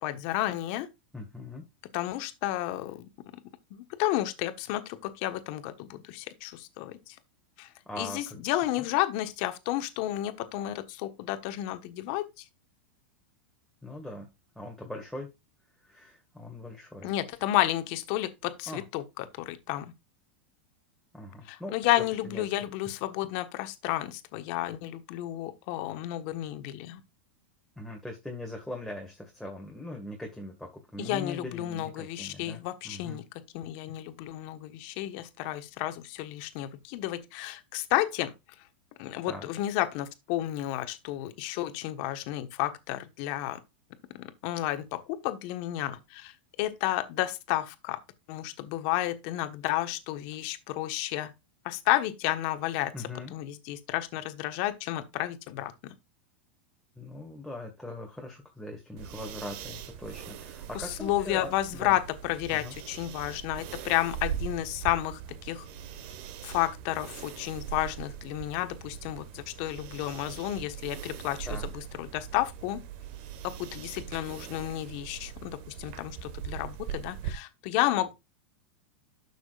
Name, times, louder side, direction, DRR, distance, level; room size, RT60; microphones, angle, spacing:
voice 1, 0.0-0.9 1.9-3.4 3.7-7.2 7.6-7.7 8.0-12.4 17.0-19.9 21.4-27.0 31.0-38.3 39.0-43.6 44.1-48.0 48.3-51.3 51.6-52.9 53.3-55.9 60.7-65.6 66.4-72.8 73.4-78.1, left 15 dB, 55° left, 1.4 m, -32 dB
voice 2, 1.1-1.7 7.9-8.5 8.8-8.9 13.8-14.3 14.6-15.3 15.8-17.1 18.7-18.8 21.1-21.7 22.2-22.4 27.8-33.2 39.3-39.5 52.9-53.3 57.0-62.0 62.5-62.7 71.5-71.7, left 1 dB, ahead, 1.9 m, -41 dB
sound 1, 59.0-77.3, right 9 dB, 55° right, 1.3 m, -41 dB
12.0 x 6.1 x 2.5 m
hypercardioid pair, 115°, 6 cm